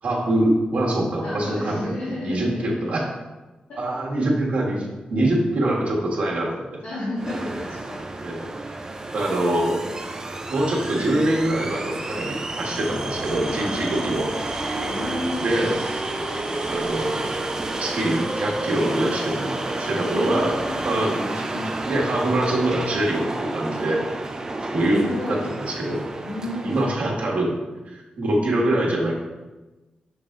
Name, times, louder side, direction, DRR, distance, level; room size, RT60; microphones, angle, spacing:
voice 1, 0.0-1.9 2.2-3.0 3.8-6.8 8.2-8.5 9.1-9.8 10.5-14.3 15.4-15.8 16.7-17.3 17.8-20.5 20.8-24.0 24.7-26.0 26.6-27.6 27.9-29.1, right 1 dB, 55° right, -3 dB, 1.5 m, -24 dB
voice 2, 1.2-2.9 3.7-4.0 6.8-8.0 9.4-9.6 13.6-13.7 14.9-15.8 20.1-20.8 24.6-25.5 26.2-26.8, left 1 dB, 90° left, -10 dB, 1.9 m, -31 dB
sound 1, 7.2-27.0, right 2 dB, 20° right, 0.5 m, -30 dB
sound 2, 11.2-19.1, right 2 dB, 40° right, 1.5 m, -38 dB
6.8 x 4.0 x 3.7 m, 1.1 s
wide cardioid pair, 155°, 3 cm